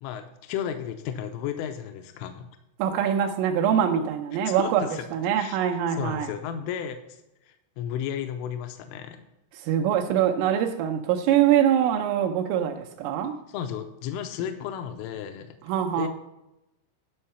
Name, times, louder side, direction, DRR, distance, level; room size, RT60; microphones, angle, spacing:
voice 1, 0.0-2.5 4.5-5.0 5.4-5.6 6.0-7.2 7.4-9.2 13.5-15.6 16.0-16.1, left 9 dB, 85° left, 7 dB, 3.1 m, -33 dB
voice 2, 2.8-4.8 5.1-6.3 9.5-13.4 15.7-16.1, right 9 dB, 80° right, 2 dB, 3.3 m, -23 dB
11.5 x 5.7 x 5.5 m, 0.90 s
omnidirectional pair, 5.7 m